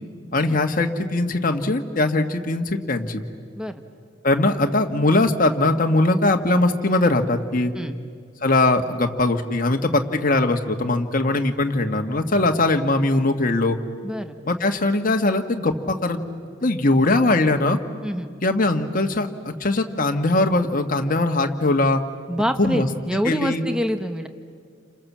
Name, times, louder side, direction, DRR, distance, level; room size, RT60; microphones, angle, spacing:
voice 1, 0.3-3.2 4.2-7.7 8.4-13.8 14.5-16.2 16.6-17.8 18.4-19.3 19.6-22.0 22.6-22.9 23.2-23.6, left 2 dB, 50° left, 4 dB, 1.7 m, -20 dB
voice 2, 14.0-14.4 18.0-18.3 22.3-24.3, equal, 5° right, 7 dB, 1.1 m, -26 dB
30.0 x 26.5 x 7.5 m, 2.1 s
head